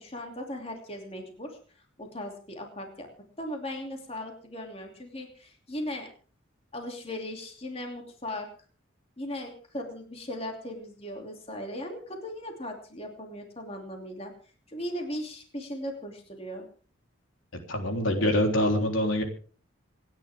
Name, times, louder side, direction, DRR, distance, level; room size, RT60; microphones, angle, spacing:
voice 1, 0.0-3.1 3.4-6.1 6.7-8.5 9.2-14.3 14.7-16.7, left 1 dB, 30° left, 2 dB, 2.9 m, -38 dB
voice 2, 17.7-19.2, left 1 dB, 75° left, 3 dB, 3.6 m, -25 dB
28.0 x 10.5 x 3.6 m, 0.41 s
head